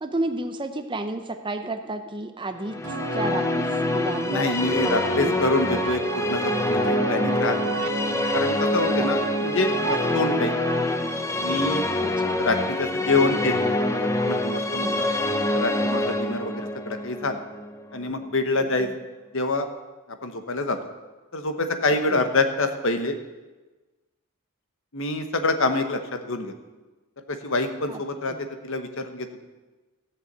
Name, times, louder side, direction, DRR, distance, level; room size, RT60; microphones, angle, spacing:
voice 1, 0.0-2.8 3.1-5.4 8.9-9.1 12.0-12.4 14.8-15.0 16.3-16.4 18.8-19.0 22.1-22.2 27.9-28.0 28.3-28.4, right 2 dB, 20° right, 8 dB, 0.7 m, -32 dB
Musical instrument, 2.6-18.1, left 1 dB, 15° left, 0.7 m, -26 dB
sound 1, 2.8-10.8, right 4 dB, 65° right, 0.5 m, -33 dB
voice 2, 4.3-7.8 8.3-10.7 11.4-11.9 12.4-15.1 15.5-17.4 17.9-18.9 19.3-19.7 20.1-20.8 21.3-23.2 24.9-26.5 27.3-29.5, left 2 dB, 60° left, 7 dB, 1.2 m, -26 dB
15.0 x 7.0 x 8.1 m, 1.2 s
head